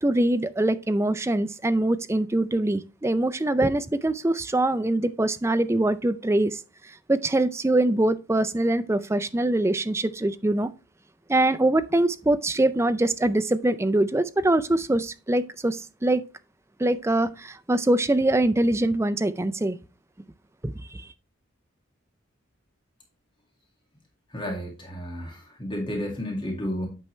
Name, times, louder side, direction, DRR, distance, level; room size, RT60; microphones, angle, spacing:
voice 1, 0.0-6.6 6.9-10.7 11.3-16.2 16.8-19.8 20.6-21.1, right 1 dB, 15° right, 0.4 m, -23 dB
voice 2, 24.3-26.9, equal, 25° left, 2.0 m, -32 dB
8.9 x 5.6 x 3.1 m
head